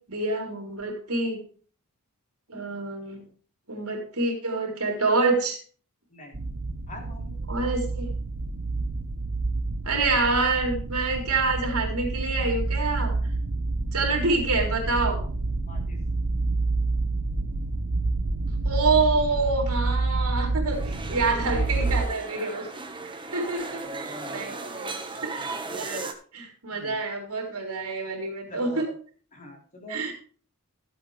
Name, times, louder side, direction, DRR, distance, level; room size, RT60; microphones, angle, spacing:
voice 1, 0.1-1.4 2.5-3.2 3.7-5.6 7.5-8.1 9.9-13.2 13.9-15.2 18.6-22.7 23.0-25.0 25.2-26.0 26.3-28.9 29.9-30.1, right 3 dB, 80° right, 2 dB, 3.9 m, -27 dB
sound 1, 6.3-22.1, right 3 dB, 65° right, 1.0 m, -28 dB
voice 2, 6.9-7.4 15.6-16.0 23.0-23.1 24.1-24.6 25.4-25.5 26.7-27.0 28.5-28.8 29.3-30.1, left 1 dB, 35° left, 0 dB, 3.9 m, -44 dB
sound 2, 20.7-26.1, right 3 dB, 20° right, 1.4 m, -36 dB
14.5 x 8.4 x 3.3 m, 0.42 s
head